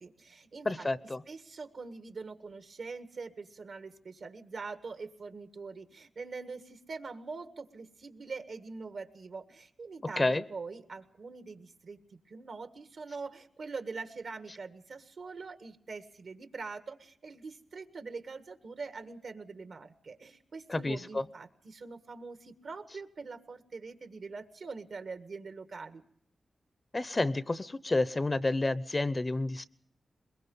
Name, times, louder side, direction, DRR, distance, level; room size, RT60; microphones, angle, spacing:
voice 1, 0.0-0.9 1.3-26.0, right 4 dB, 70° right, 8 dB, 1.7 m, -43 dB
voice 2, 0.6-1.2 10.2-10.4 20.7-21.2 26.9-29.6, left 2 dB, 30° left, 15 dB, 0.7 m, -30 dB
22.0 x 21.5 x 5.4 m, 0.66 s
cardioid pair, 75°, 0 cm